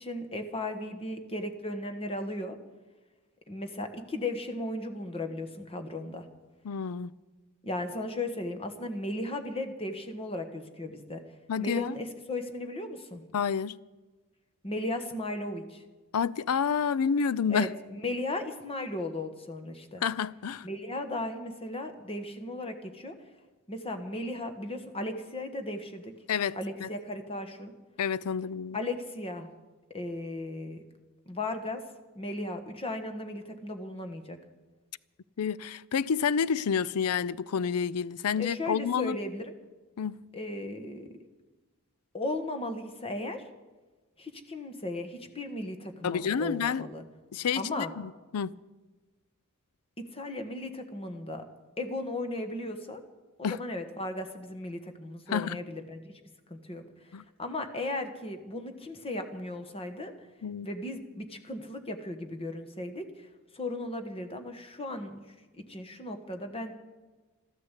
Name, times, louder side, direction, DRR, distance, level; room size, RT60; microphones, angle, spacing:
voice 1, 0.0-2.6 3.5-6.3 7.6-11.2 11.6-13.2 14.6-15.8 17.5-20.0 20.6-23.1 23.7-26.1 26.5-27.7 28.7-29.5 29.9-30.8 31.3-31.8 32.1-34.4 38.4-39.6 40.3-41.1 42.1-43.5 44.2-47.0 47.6-47.9 50.0-51.4 51.8-53.0 53.4-56.2 56.5-56.8 57.4-60.1 60.6-63.3 63.5-65.2 65.5-66.8, left 1 dB, 25° left, 1.4 m, -36 dB
voice 2, 6.6-7.1 11.5-12.0 13.3-13.8 16.1-17.7 20.0-20.7 26.3-26.9 28.0-28.8 35.4-39.2 40.0-40.2 46.0-46.9 47.3-48.5 53.4-53.6 55.3-55.6 57.1-57.2 60.4-60.7, left 7 dB, 80° left, 0.5 m, -29 dB
13.5 x 12.5 x 8.2 m
head